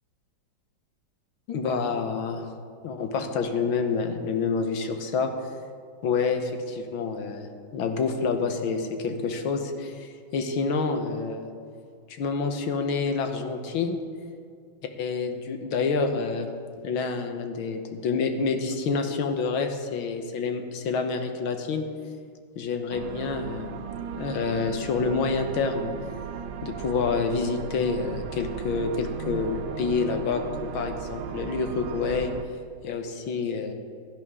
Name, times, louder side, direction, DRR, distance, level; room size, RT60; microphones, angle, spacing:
voice 1, 1.5-2.5 2.8-5.3 6.0-7.5 7.7-11.5 12.1-14.0 15.0-16.5 16.8-21.8 22.6-23.7 24.1-25.9 26.6-32.3 32.8-33.7, left 4 dB, 85° left, 6 dB, 1.8 m, -28 dB
sound 1, 22.9-32.4, right 8 dB, 75° right, 1.3 m, -36 dB
16.5 x 11.0 x 3.7 m, 2.2 s
omnidirectional pair, 2.2 m